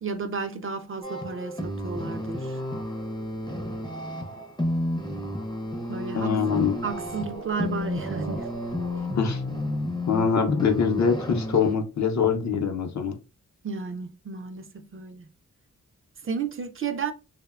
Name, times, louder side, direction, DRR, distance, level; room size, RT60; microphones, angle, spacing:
voice 1, 0.0-2.6 5.9-6.4 6.8-8.5 13.6-15.2 16.2-17.1, right 5 dB, 40° right, 0.4 m, -32 dB
sound 1, 1.0-11.7, left 1 dB, 15° left, 0.5 m, -32 dB
sound 2, 3.1-3.2 6.1-9.8, right 4 dB, 90° right, 0.6 m, -42 dB
voice 2, 6.1-6.8 9.2-9.4 10.1-13.1, left 6 dB, 55° left, 0.6 m, -23 dB
2.8 x 2.1 x 2.3 m
cardioid pair, 70°, 33 cm